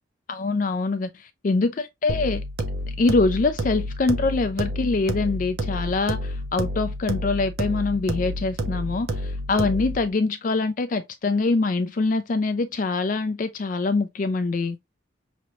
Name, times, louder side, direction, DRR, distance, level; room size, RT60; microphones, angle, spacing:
voice 1, 0.3-2.4 3.0-14.8, left 3 dB, 45° left, 0.4 m, -24 dB
sound 1, 2.1-10.1, equal, 55° right, 0.7 m, -30 dB
6.0 x 3.1 x 2.7 m
head